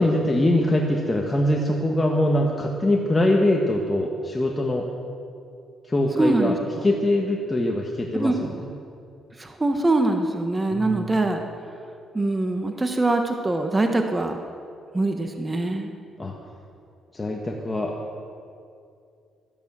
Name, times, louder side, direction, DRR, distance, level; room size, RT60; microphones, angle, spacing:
voice 1, 0.0-4.9 5.8-8.3 8.6-8.7 10.7-11.1 16.2-16.3 17.1-17.9, left 1 dB, 20° left, 0 dB, 1.4 m, -23 dB
voice 2, 6.2-6.9 8.2-8.5 9.4-11.4 12.1-14.4 14.9-15.9, right 2 dB, 20° right, 5 dB, 1.2 m, -23 dB
13.5 x 10.5 x 7.5 m, 2.5 s
cardioid pair, 90°, 0 cm